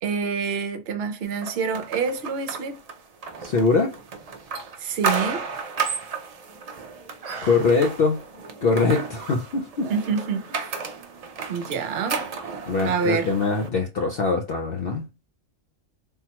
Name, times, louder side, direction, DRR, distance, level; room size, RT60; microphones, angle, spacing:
voice 1, 0.0-2.8 4.8-5.5 9.9-10.6 11.5-12.2 12.8-13.3, right 5 dB, 60° right, 0.8 m, -27 dB
sound 1, 1.4-13.7, right 5 dB, 90° right, 0.3 m, -33 dB
voice 2, 3.4-4.0 7.4-8.2 8.6-9.9 12.7-15.1, left 4 dB, 60° left, 0.7 m, -22 dB
3.6 x 2.1 x 2.8 m
omnidirectional pair, 1.3 m